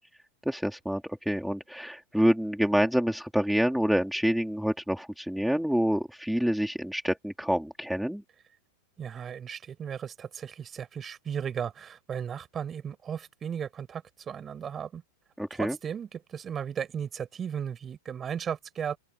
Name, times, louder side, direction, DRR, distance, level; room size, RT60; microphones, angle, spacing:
voice 1, 0.5-8.2 15.4-15.8, equal, ahead, 2.5 m, -27 dB
voice 2, 9.0-15.0 15.5-19.0, right 8 dB, 25° right, 5.6 m, -35 dB
open air
hypercardioid pair, 125°, 0 cm